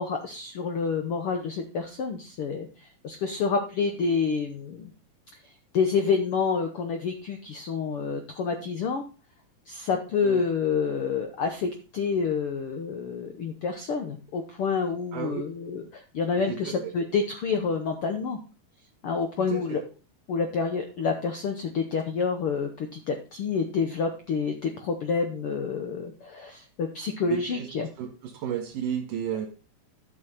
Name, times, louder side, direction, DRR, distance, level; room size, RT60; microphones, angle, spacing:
voice 1, 0.0-4.9 5.4-9.0 9.7-18.4 19.0-19.8 20.3-27.9, left 5 dB, 80° left, 6 dB, 1.2 m, -28 dB
voice 2, 15.1-15.4 16.4-16.9 19.4-19.8 27.3-29.5, right 9 dB, 80° right, 3 dB, 3.0 m, -33 dB
12.0 x 6.3 x 4.2 m, 0.33 s
omnidirectional pair, 3.9 m